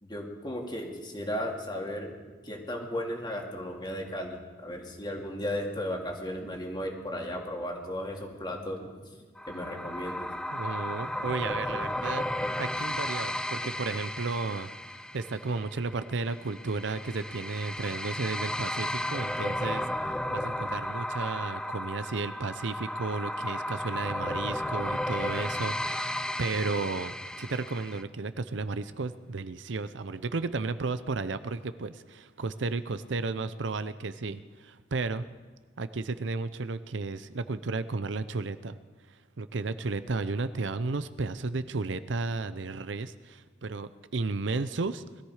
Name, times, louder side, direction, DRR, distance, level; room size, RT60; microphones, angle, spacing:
voice 1, 0.0-2.2 2.4-8.9 9.5-10.3, equal, 25° left, 1 dB, 2.5 m, -35 dB
sound 1, 9.4-28.0, left 1 dB, 5° left, 0.5 m, -34 dB
voice 2, 10.5-12.3 12.6-14.7 15.1-35.3 35.8-38.8 39.4-45.2, right 3 dB, 70° right, 12 dB, 0.7 m, -33 dB
21.0 x 13.5 x 4.9 m, 1.4 s
head